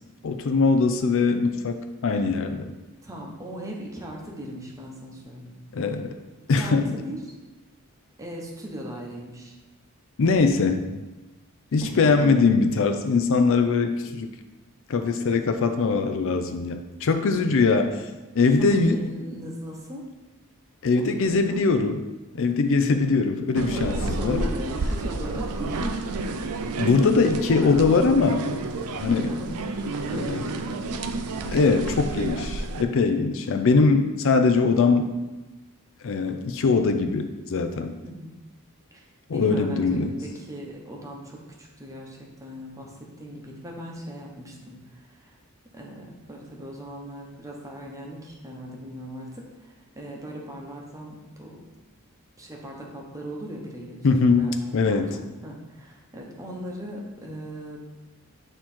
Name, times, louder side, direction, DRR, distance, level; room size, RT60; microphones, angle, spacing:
voice 1, 0.2-2.7 5.7-6.1 6.5-7.0 10.2-10.9 11.7-14.3 14.9-17.9 18.4-19.0 20.8-22.0 22.3-24.5 26.8-28.5 29.0-29.3 30.1-30.5 31.4-35.1 36.0-37.9 39.3-40.1 54.0-55.1, left 4 dB, 60° left, 7 dB, 0.4 m, -22 dB
voice 2, 3.0-5.5 6.5-7.2 8.2-9.5 11.8-12.4 18.5-20.1 21.0-21.1 21.4-21.6 23.7-26.1 29.3-29.6 30.0-30.6 33.3-34.1 34.4-34.5 38.0-38.3 38.9-39.0 39.3-42.9 43.2-45.3 45.7-51.6 52.4-57.8, equal, 15° right, -2 dB, 0.9 m, -38 dB
sound 1, 23.5-32.8, right 3 dB, 85° right, 0.5 m, -30 dB
7.6 x 3.0 x 4.3 m, 1.1 s
head